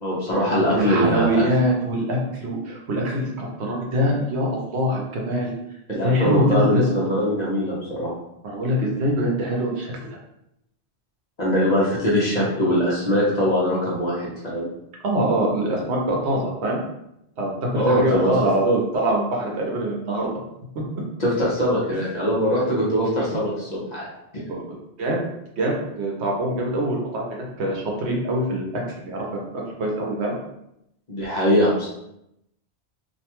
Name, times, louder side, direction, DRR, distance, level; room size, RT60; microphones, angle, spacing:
voice 1, 0.0-1.4 5.9-8.1 11.4-14.7 17.8-18.4 21.2-24.1 31.1-31.9, equal, 45° left, -6 dB, 0.8 m, -22 dB
voice 2, 0.7-5.5 6.0-6.8 8.4-10.1 15.0-16.8 17.4-20.3 24.5-25.3 25.6-30.4, equal, 75° right, -1 dB, 0.9 m, -24 dB
2.6 x 2.2 x 2.8 m, 0.81 s
omnidirectional pair, 1.2 m